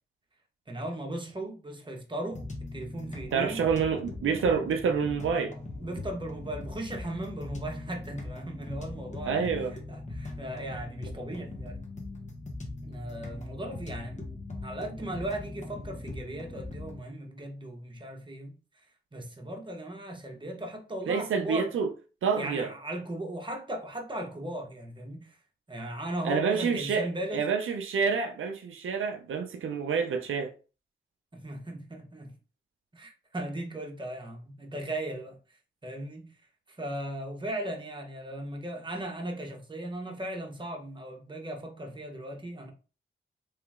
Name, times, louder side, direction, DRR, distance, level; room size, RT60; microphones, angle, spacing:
voice 1, 0.7-3.7 5.8-9.5 9.9-11.8 12.8-14.2 14.5-18.6 19.1-21.7 22.4-25.4 25.7-27.4 31.3-32.4 32.9-35.4 35.8-36.3 36.7-42.7, right 1 dB, 25° right, 1.1 m, -37 dB
sound 1, 2.3-17.0, left 2 dB, 35° left, 1.1 m, -40 dB
voice 2, 3.3-5.6 9.3-9.8 21.1-21.9 22.2-22.7 26.2-30.5, right 6 dB, 90° right, 0.5 m, -28 dB
3.2 x 2.9 x 3.5 m
cardioid pair, 65°, 20 cm